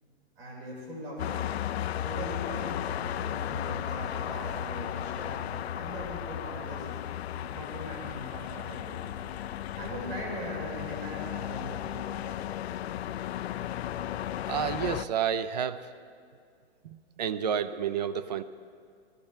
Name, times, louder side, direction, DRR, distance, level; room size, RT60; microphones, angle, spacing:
voice 1, 0.0-1.5 2.0-5.5 5.7-6.9 7.3-9.4 9.7-12.3 12.6-12.7, equal, 65° right, -2 dB, 4.6 m, -41 dB
sound 1, 1.2-15.0, left 11 dB, 70° left, 0.5 m, -35 dB
voice 2, 14.5-15.9 16.8-18.4, right 8 dB, 40° right, 14 dB, 0.5 m, -30 dB
18.5 x 14.0 x 4.4 m, 2.2 s
hypercardioid pair, 165°, 33 cm